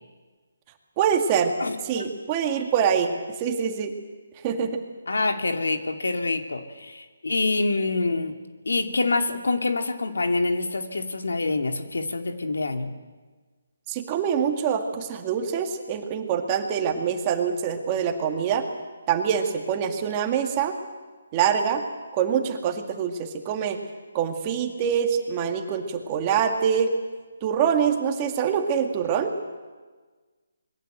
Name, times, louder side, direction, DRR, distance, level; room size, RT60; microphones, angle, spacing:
voice 1, 1.0-1.5 1.8-3.9 4.4-4.8 13.9-18.7 19.1-20.7 21.3-21.8 22.1-23.8 24.1-26.9 27.4-29.3, right 7 dB, 20° right, 4 dB, 2.1 m, -25 dB
voice 2, 1.6-2.1 5.1-8.3 8.7-12.9, left 3 dB, 90° left, 5 dB, 2.6 m, -26 dB
26.0 x 22.0 x 7.9 m, 1.4 s
hypercardioid pair, 170°, 0 cm